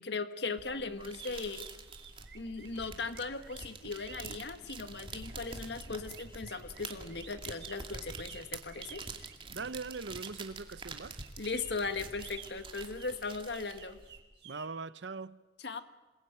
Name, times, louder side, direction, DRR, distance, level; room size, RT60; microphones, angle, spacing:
voice 1, 0.0-1.7 2.3-9.0 11.4-14.0 15.6-15.8, left 4 dB, 70° left, 1.7 m, -38 dB
sound 1, 0.6-14.2, right 4 dB, 30° right, 2.5 m, -47 dB
sound 2, 1.1-10.4 11.2-14.7, right 8 dB, 70° right, 5.0 m, -52 dB
voice 2, 9.5-11.2 14.4-15.4, right 4 dB, 85° right, 0.9 m, -41 dB
27.5 x 21.0 x 9.2 m
head